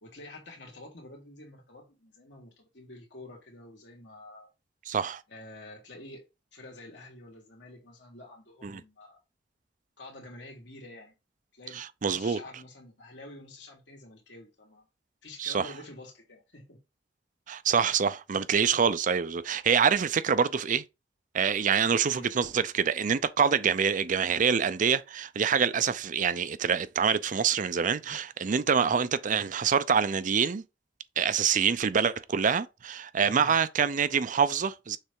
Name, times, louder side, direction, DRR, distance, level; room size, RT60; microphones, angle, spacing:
voice 1, 0.0-4.5 5.3-6.3 6.5-9.2 10.0-11.2 11.5-14.9 15.2-16.8 22.1-22.3 33.2-33.6, left 2 dB, 75° left, 2.6 m, -48 dB
voice 2, 4.9-5.2 8.6-8.8 11.8-12.4 15.4-15.7 17.5-20.8 21.3-30.6 31.2-35.0, right 6 dB, 45° right, 0.5 m, -26 dB
6.7 x 3.3 x 4.7 m
head